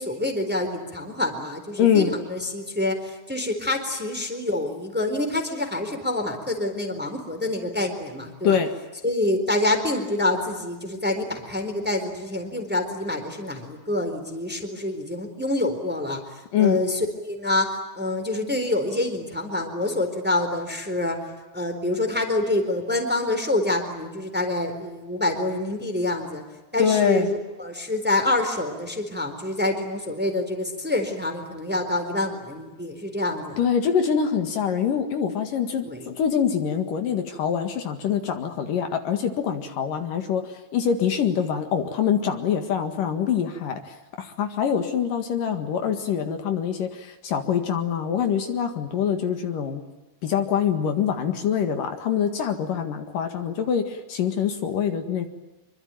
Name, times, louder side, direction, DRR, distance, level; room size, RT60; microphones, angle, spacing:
voice 1, 0.0-8.6 9.0-16.2 16.6-21.2 21.5-26.4 26.7-33.6 35.8-36.1, left 2 dB, 5° right, 5 dB, 3.6 m, -26 dB
voice 2, 1.8-2.1 8.4-8.7 16.5-16.8 26.8-27.3 33.6-49.8 50.2-55.3, left 8 dB, 65° left, 6 dB, 3.4 m, -24 dB
26.0 x 24.0 x 9.1 m, 1.1 s
omnidirectional pair, 4.2 m